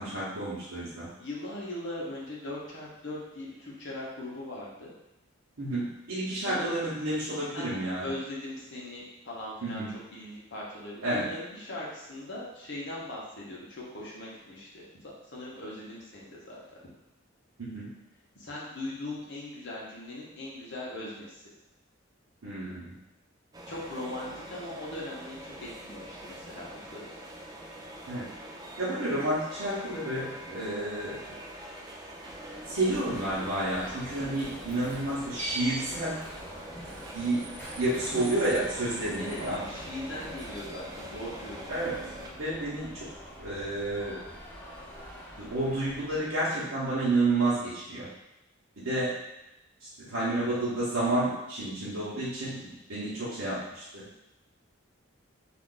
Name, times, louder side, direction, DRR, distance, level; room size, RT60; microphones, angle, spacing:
voice 1, 0.0-1.1 5.6-8.1 9.6-9.9 11.0-11.3 17.6-17.9 22.4-22.9 28.1-28.3 28.8-31.2 32.7-36.2 37.1-37.5 37.8-39.6 41.7-42.0 42.4-43.1 43.4-44.2 45.4-48.1 48.8-49.2 50.0-54.0, right 2 dB, 80° right, -10 dB, 0.9 m, -30 dB
voice 2, 1.2-4.9 6.4-6.8 7.5-9.8 10.1-14.8 15.3-16.6 18.3-21.4 23.7-27.1 31.0-31.1 39.2-41.7, left 1 dB, 60° left, -5 dB, 0.8 m, -39 dB
sound 1, 23.5-42.3, right 1 dB, 20° right, 0.3 m, -44 dB
Alarm, 32.4-46.4, right 1 dB, 10° left, 0.7 m, -44 dB
2.4 x 2.4 x 3.7 m, 0.94 s
head